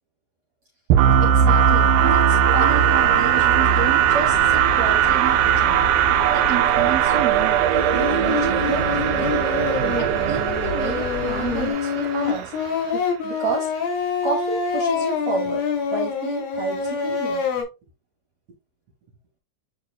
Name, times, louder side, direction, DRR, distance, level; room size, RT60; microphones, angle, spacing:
sound 1, 0.9-12.7, right 9 dB, 85° right, 1.8 m, -19 dB
voice 1, 1.2-5.8 6.3-7.6 7.9-9.4 10.0-12.5 12.9-13.7 14.2-15.6 15.9-17.4, right 5 dB, 60° right, 2.0 m, -30 dB
sound 2, 2.6-11.7, left 5 dB, 40° left, 2.9 m, -33 dB
Singing, 7.7-17.6, left 6 dB, 75° left, 4.3 m, -26 dB
11.0 x 3.9 x 2.2 m
omnidirectional pair, 4.3 m